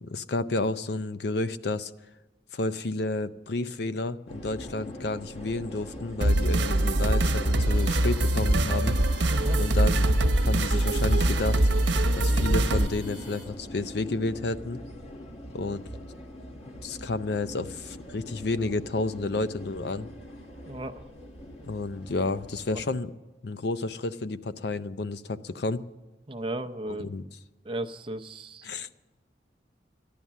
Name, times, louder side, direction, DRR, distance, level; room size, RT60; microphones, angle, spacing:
voice 1, 0.0-1.9 2.5-9.0 9.6-10.1 10.4-11.6 12.1-14.8 15.5-15.9 16.8-20.1 21.6-23.1 23.4-25.8 27.0-27.3 28.6-28.9, left 2 dB, 65° left, 13 dB, 0.6 m, -31 dB
sound 1, 4.3-22.9, left 1 dB, 35° left, 1.6 m, -42 dB
sound 2, 6.2-12.9, right 1 dB, 85° right, 0.9 m, -23 dB
sound 3, 7.7-13.4, equal, 90° left, 5.7 m, -48 dB
voice 2, 9.3-9.6 20.7-21.1 26.3-27.1 27.6-28.7, right 1 dB, 30° right, 7 dB, 0.7 m, -35 dB
13.5 x 11.0 x 7.3 m, 1.1 s
head